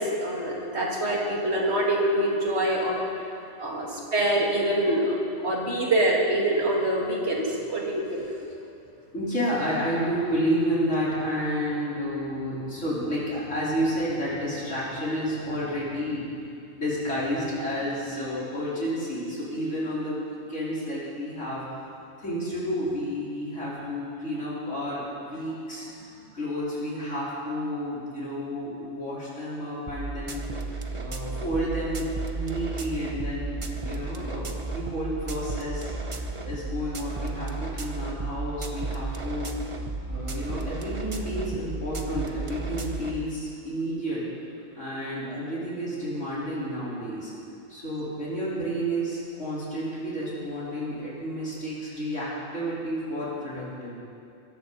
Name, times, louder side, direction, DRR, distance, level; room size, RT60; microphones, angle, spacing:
voice 1, 0.0-3.1 3.6-5.2 5.4-8.2, right 1 dB, 60° right, -2 dB, 2.8 m, -25 dB
voice 2, 9.1-16.5 16.8-21.6 22.2-25.9 26.3-30.4 30.9-32.1 32.3-35.9 36.4-39.5 40.1-44.2 44.7-47.3 47.7-53.9, equal, 70° left, -8 dB, 4.7 m, -30 dB
sound 1, 29.9-43.2, right 3 dB, 30° right, 0.9 m, -33 dB
22.5 x 14.5 x 4.2 m, 2.6 s
omnidirectional pair, 1.3 m